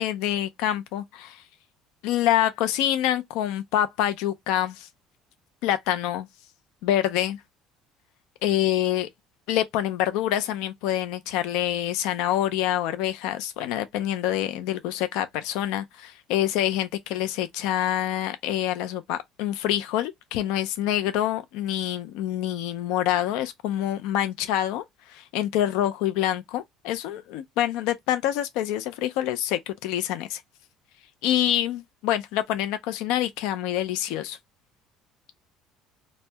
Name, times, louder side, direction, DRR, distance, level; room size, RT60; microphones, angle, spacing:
voice 1, 0.0-1.4 2.0-4.9 5.6-6.3 6.8-7.4 8.4-9.1 9.5-30.4 31.2-34.4, left 12 dB, 80° left, 0.4 m, -26 dB
2.7 x 2.0 x 3.3 m
cardioid pair, 180°, 0 cm